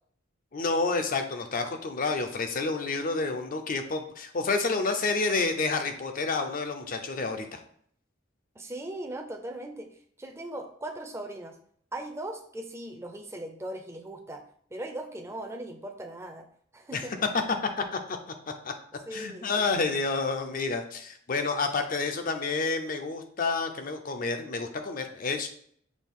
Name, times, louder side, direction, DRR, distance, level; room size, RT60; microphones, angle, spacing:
voice 1, 0.5-7.6 16.9-17.1 17.9-18.2 18.6-18.7 19.1-25.5, left 3 dB, 45° left, 6 dB, 0.5 m, -29 dB
voice 2, 8.6-9.9 10.2-11.6 11.9-14.4 14.7-16.4 16.7-17.1 19.1-19.7, right 1 dB, 15° right, 4 dB, 0.5 m, -39 dB
6.1 x 2.4 x 3.6 m, 0.62 s
head